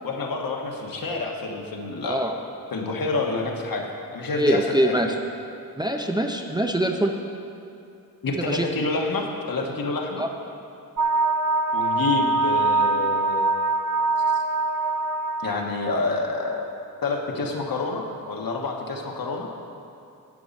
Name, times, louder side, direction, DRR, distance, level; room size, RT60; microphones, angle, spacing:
voice 1, 0.0-2.2 2.7-3.8 4.1-5.0 8.2-10.2 11.7-13.4 14.3-14.4 15.4-16.6 17.0-19.5, left 3 dB, 65° left, 1 dB, 1.4 m, -28 dB
voice 2, 2.0-2.3 4.3-5.2 5.8-7.1 8.4-8.7 10.2-10.3, right 1 dB, 10° right, 3 dB, 0.5 m, -24 dB
sound 1, 11.0-15.9, right 3 dB, 60° right, 0.6 m, -23 dB
11.0 x 8.6 x 5.3 m, 2.5 s
wide cardioid pair, 145°, 36 cm